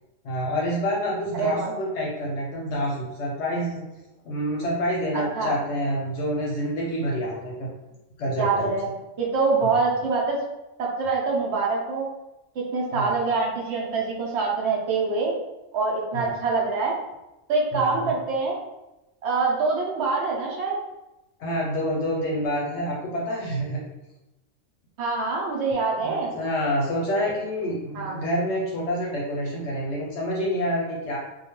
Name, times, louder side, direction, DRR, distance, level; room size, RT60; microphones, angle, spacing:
voice 1, 0.2-3.9 4.2-7.7 8.2-8.7 9.6-9.8 12.9-13.1 16.1-16.3 17.7-18.1 21.4-23.8 26.0-31.2, equal, 70° left, -3 dB, 0.8 m, -27 dB
voice 2, 1.3-1.7 5.1-5.5 8.4-8.9 9.2-10.4 10.8-12.1 12.6-15.3 15.7-16.9 17.5-18.6 19.2-20.8 25.0-26.3 27.2-27.3 27.9-28.1, right 4 dB, 65° right, -2 dB, 0.8 m, -25 dB
2.2 x 2.2 x 2.9 m, 0.96 s
omnidirectional pair, 1.3 m